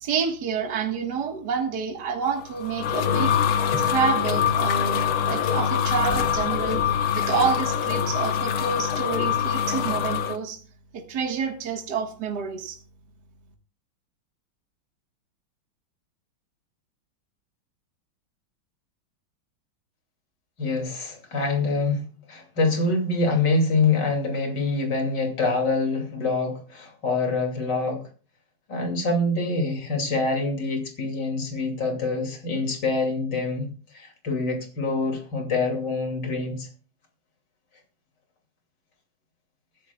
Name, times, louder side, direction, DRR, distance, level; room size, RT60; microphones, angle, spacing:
voice 1, 0.0-3.4 3.9-10.6 10.9-12.8, right 6 dB, 55° right, 4 dB, 2.0 m, -28 dB
sound 1, 2.4-10.4, left 8 dB, 85° left, 2.0 m, -24 dB
voice 2, 20.6-22.0 22.3-28.0 28.7-36.7, left 3 dB, 55° left, 2 dB, 3.2 m, -25 dB
24.0 x 10.5 x 2.3 m, 0.39 s
omnidirectional pair, 2.3 m